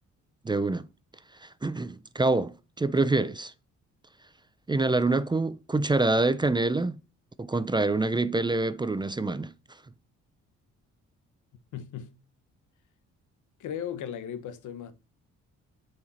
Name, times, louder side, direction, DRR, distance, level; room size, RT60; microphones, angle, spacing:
voice 1, 0.4-0.9 1.4-3.5 4.7-7.0 7.4-9.5, right 2 dB, 15° right, 0.5 m, -26 dB
voice 2, 11.7-12.1 13.6-14.9, left 9 dB, 80° left, 1.2 m, -36 dB
6.8 x 5.0 x 4.3 m
cardioid pair, 90°, 30 cm